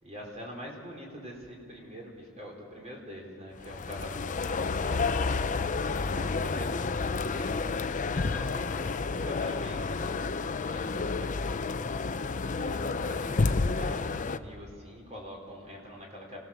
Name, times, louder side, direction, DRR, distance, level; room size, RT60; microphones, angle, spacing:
voice 1, 0.0-5.2 5.5-11.6 12.5-16.4, equal, 30° right, 0 dB, 4.3 m, -44 dB
sound 1, 3.6-14.4, left 4 dB, 35° left, 0.5 m, -30 dB
26.5 x 17.5 x 7.2 m, 2.5 s
head